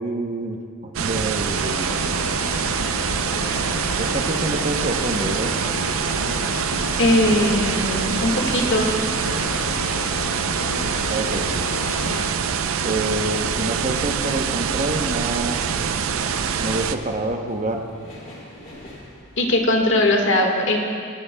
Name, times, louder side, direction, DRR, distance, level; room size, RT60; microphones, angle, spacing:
voice 1, 0.0-2.0 3.9-5.6 11.1-11.5 12.8-15.6 16.6-17.9, right 2 dB, 35° right, 3 dB, 0.8 m, -27 dB
sound 1, 0.9-16.9, right 6 dB, 70° right, 0.5 m, -25 dB
sound 2, 1.5-12.3, left 5 dB, 80° left, 0.6 m, -33 dB
sound 3, 3.0-20.1, left 1 dB, 35° left, 3.0 m, -43 dB
voice 2, 7.0-8.9 19.4-20.8, left 1 dB, 60° left, 2 dB, 1.6 m, -20 dB
20.0 x 14.5 x 2.3 m, 2.3 s
head